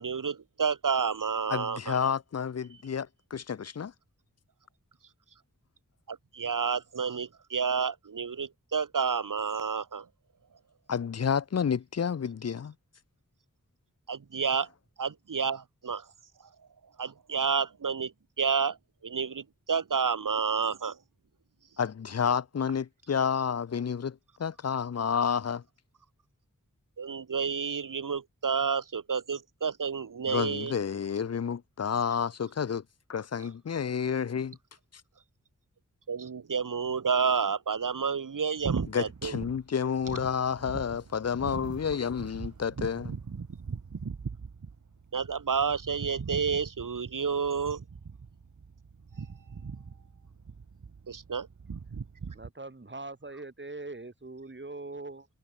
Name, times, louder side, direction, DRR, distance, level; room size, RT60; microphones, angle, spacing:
voice 1, 0.0-2.0 6.1-10.1 14.1-14.7 15.0-16.1 17.0-18.8 19.0-21.0 27.0-30.7 36.1-39.3 45.1-47.8 51.1-51.5, right 6 dB, 85° right, 1.6 m, -30 dB
voice 2, 1.5-3.9 10.9-12.7 21.8-25.6 30.3-34.6 34.9-35.0 38.9-43.2, left 7 dB, 55° left, 0.6 m, -30 dB
sound 1, 38.6-52.5, right 5 dB, 65° right, 1.5 m, -40 dB
voice 3, 52.3-55.3, right 2 dB, 35° right, 2.7 m, -41 dB
cardioid pair, 40°, 31 cm